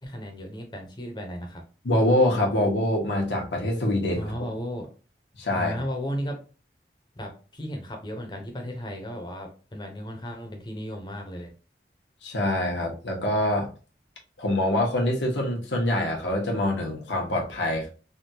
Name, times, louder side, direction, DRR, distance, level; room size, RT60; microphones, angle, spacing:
voice 1, 0.0-1.6 4.1-4.9 5.6-6.4 7.2-11.5, equal, 25° left, 3 dB, 0.7 m, -35 dB
voice 2, 1.8-4.3 5.4-5.8 12.2-13.7 14.4-17.9, left 1 dB, 90° left, 0 dB, 1.1 m, -25 dB
3.5 x 2.3 x 2.8 m, 0.35 s
head